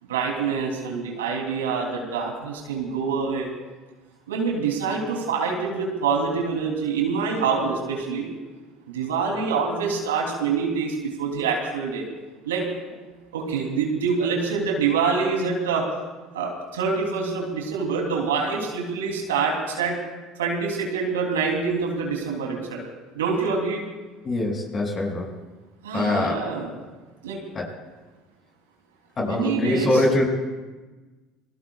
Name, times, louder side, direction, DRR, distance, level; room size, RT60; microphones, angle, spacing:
voice 1, 0.1-3.5 4.3-8.3 8.9-12.0 12.4-12.7 13.3-15.9 16.3-20.0 20.4-22.8 23.1-23.8 25.8-26.7 27.2-27.4 29.2-29.9, right 5 dB, 85° right, 1 dB, 3.1 m, -26 dB
voice 2, 24.2-25.4 25.9-26.4 27.5-27.7 29.2-30.2, left 2 dB, 35° left, 0 dB, 6.1 m, -23 dB
28.0 x 21.5 x 2.4 m, 1.2 s
hypercardioid pair, 70°, 0 cm